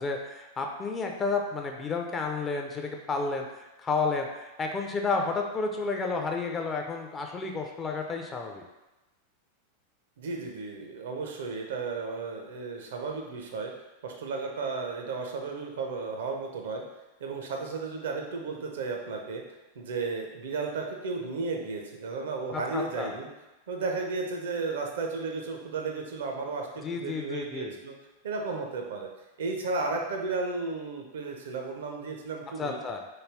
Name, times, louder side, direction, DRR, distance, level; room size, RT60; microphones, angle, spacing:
voice 1, 0.0-8.6 22.5-23.1 26.8-27.8 32.6-33.0, left 4 dB, 20° left, 2 dB, 0.4 m, -31 dB
voice 2, 10.2-13.7 14.0-16.8 17.2-19.4 19.8-23.3 23.7-27.9 28.2-29.1 29.4-32.8, right 4 dB, 60° right, 2 dB, 0.5 m, -34 dB
3.2 x 2.2 x 3.4 m, 1.0 s
figure-of-eight pair, 90°, 0 cm